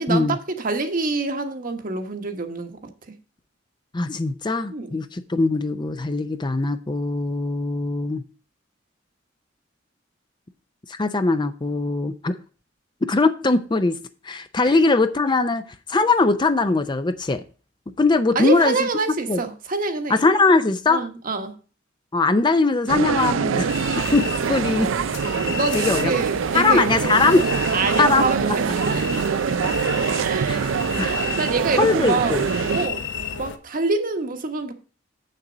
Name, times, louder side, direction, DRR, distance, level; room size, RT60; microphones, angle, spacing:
voice 1, 0.0-2.8 4.7-4.9 14.6-14.7 18.3-20.2 20.9-21.5 25.5-27.3 27.7-29.5 30.1-30.7 30.9-32.4 32.7-33.0 33.4-34.7, right 3 dB, 45° right, 1.2 m, -26 dB
voice 2, 3.9-8.2 10.9-12.4 13.0-14.0 14.2-15.6 15.9-17.4 18.0-18.9 19.3-19.4 20.1-21.0 22.1-23.8 24.1-24.9 25.3-26.1 26.5-27.4 28.0-28.3 30.5-31.2 31.8-32.4, left 3 dB, 25° left, 0.5 m, -21 dB
sound 1, 22.9-32.9, right 6 dB, 85° right, 0.4 m, -24 dB
sound 2, 23.7-33.6, left 5 dB, 65° left, 0.9 m, -33 dB
7.3 x 6.7 x 5.0 m
head